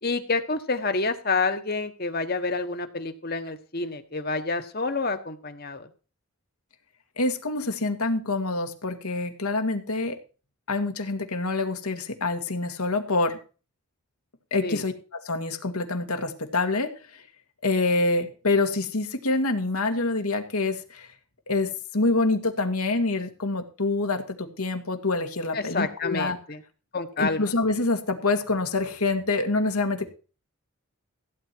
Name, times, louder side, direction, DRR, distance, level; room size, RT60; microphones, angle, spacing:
voice 1, 0.0-5.9 14.6-14.8 25.5-26.6 26.9-27.4, left 3 dB, 45° left, 8 dB, 1.3 m, -28 dB
voice 2, 7.2-10.2 10.7-13.4 14.5-17.2 17.6-21.1 21.5-26.4 27.2-30.1, left 3 dB, 85° left, 5 dB, 2.0 m, -26 dB
16.0 x 9.1 x 4.6 m, 0.35 s
head